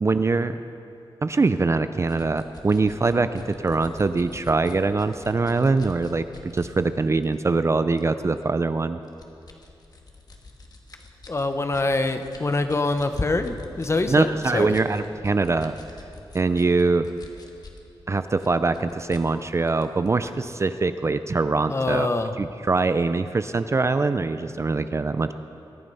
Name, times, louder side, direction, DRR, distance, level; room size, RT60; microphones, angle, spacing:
voice 1, 0.0-0.6 1.2-9.0 14.1-15.7 16.3-17.1 18.1-22.1 22.4-25.3, right 3 dB, 30° right, 11 dB, 0.4 m, -23 dB
sound 1, 2.1-6.7 7.2-7.4 8.0-8.4 9.1-17.9 18.2-20.3, left 3 dB, 45° left, 1.6 m, -46 dB
voice 2, 11.3-14.7 21.7-22.3, left 2 dB, 30° left, 8 dB, 0.8 m, -25 dB
22.5 x 11.0 x 5.5 m, 2.9 s
wide cardioid pair, 150°, 9 cm